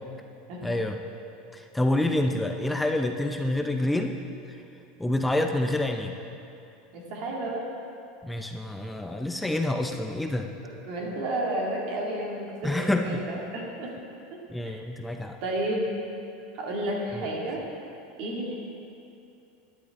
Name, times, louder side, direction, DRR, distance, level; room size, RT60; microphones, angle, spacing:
voice 1, 0.6-1.0 1.5-4.2 5.0-6.1 8.2-10.5 12.6-13.2 14.5-15.4 17.1-17.3, left 1 dB, 5° left, 4 dB, 0.5 m, -27 dB
voice 2, 6.9-7.6 10.6-14.0 14.6-14.8 15.4-15.9 16.5-17.7 18.2-18.5, right 1 dB, 60° right, -2 dB, 2.2 m, -31 dB
11.5 x 10.0 x 3.7 m, 2.6 s
supercardioid pair, 120°, 0 cm